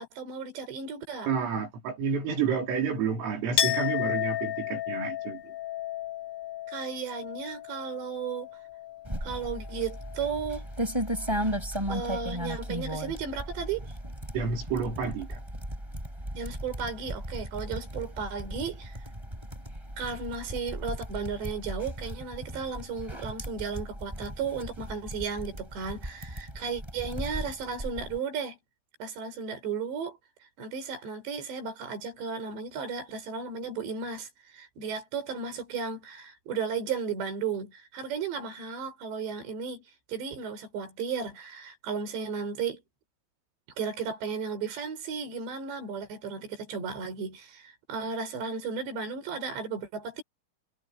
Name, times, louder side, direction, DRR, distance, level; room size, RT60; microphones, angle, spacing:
voice 1, 0.0-1.3 6.7-8.5 9.2-10.7 11.9-13.9 16.3-19.0 20.0-28.6 29.0-30.2 30.6-39.8 40.1-42.8 43.8-50.2, right 5 dB, 60° right, 7.8 m, -34 dB
voice 2, 1.3-5.5 14.3-15.4, right 6 dB, 85° right, 7.2 m, -30 dB
Chink clink, 3.6-9.1 9.4-10.3, left 12 dB, 70° left, 4.3 m, -33 dB
sound 1, 9.1-28.2, equal, 5° right, 6.9 m, -36 dB
omnidirectional pair, 5.7 m